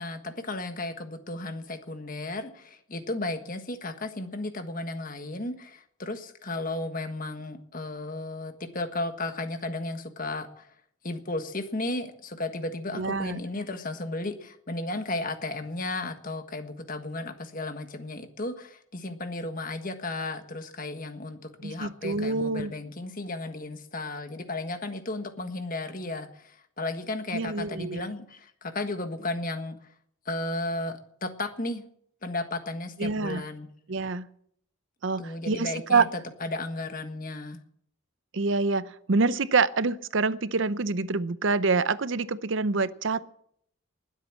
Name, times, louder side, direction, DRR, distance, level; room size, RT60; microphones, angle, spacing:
voice 1, 0.0-10.7 11.0-29.8 30.2-31.8 32.2-33.7 35.2-36.1 36.4-37.6, left 2 dB, 40° left, 8 dB, 1.5 m, -34 dB
voice 2, 12.9-13.4 21.6-22.7 27.3-28.1 33.0-33.4 33.9-34.3 35.0-36.1 38.3-43.3, right 4 dB, 60° right, 15 dB, 0.7 m, -26 dB
20.5 x 8.4 x 7.4 m, 0.68 s
head